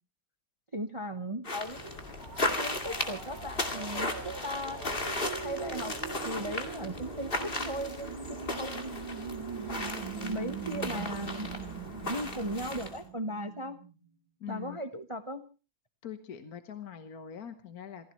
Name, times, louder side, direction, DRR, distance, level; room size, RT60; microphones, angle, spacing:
voice 1, 0.7-2.0 2.6-4.8 5.4-6.0 6.2-9.0 9.7-11.5 11.9-13.8 14.5-15.4, equal, 40° right, 9 dB, 0.4 m, -37 dB
sound 1, 1.4-13.0, left 2 dB, 25° left, 2.2 m, -36 dB
sound 2, 2.1-13.9, right 7 dB, 85° right, 2.7 m, -42 dB
voice 2, 14.4-14.8 16.0-18.1, left 9 dB, 50° left, 9 dB, 1.4 m, -43 dB
27.5 x 15.5 x 3.1 m, 0.32 s
omnidirectional pair, 2.3 m